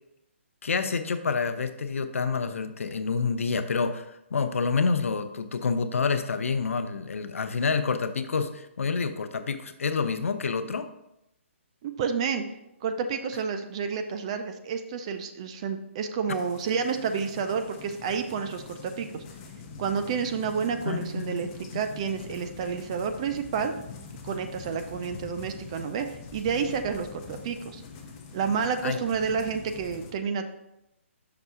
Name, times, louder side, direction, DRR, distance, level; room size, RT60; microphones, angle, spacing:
voice 1, 0.6-10.9 20.8-21.5 28.8-29.0, left 5 dB, 85° left, 9 dB, 0.6 m, -28 dB
voice 2, 11.8-12.4 12.8-19.2 19.8-23.7 24.2-27.8 28.3-30.4, right 6 dB, 25° right, 7 dB, 0.4 m, -30 dB
sound 1, 16.3-30.1, left 5 dB, 25° left, 0.7 m, -44 dB
6.0 x 3.5 x 5.4 m, 0.87 s
hypercardioid pair, 165°, 7 cm